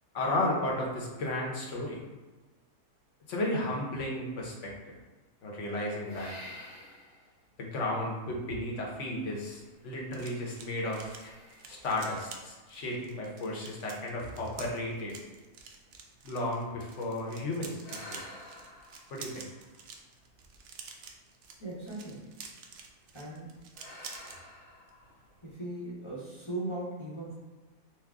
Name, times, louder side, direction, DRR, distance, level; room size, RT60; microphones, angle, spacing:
voice 1, 0.1-2.0 3.3-5.0 5.4-6.3 7.6-11.3 11.7-15.1 16.2-18.2 19.1-19.5, left 1 dB, 60° left, -2 dB, 1.0 m, -34 dB
sound 1, 6.1-7.4 8.0-8.1 9.4-10.3 10.8-13.2 13.9-14.0 14.5-14.6 14.9-17.2 17.8-20.5 21.7-22.2 22.5-22.8 23.7-25.6, left 1 dB, 85° left, 1.7 m, -51 dB
sound 2, 9.2-24.4 24.7-25.0 25.3-25.5, right 5 dB, 70° right, 0.7 m, -49 dB
voice 2, 21.6-22.3 23.1-23.5 25.4-27.3, right 2 dB, 25° left, -7 dB, 0.7 m, -38 dB
4.5 x 2.1 x 3.5 m, 1.3 s
omnidirectional pair, 1.6 m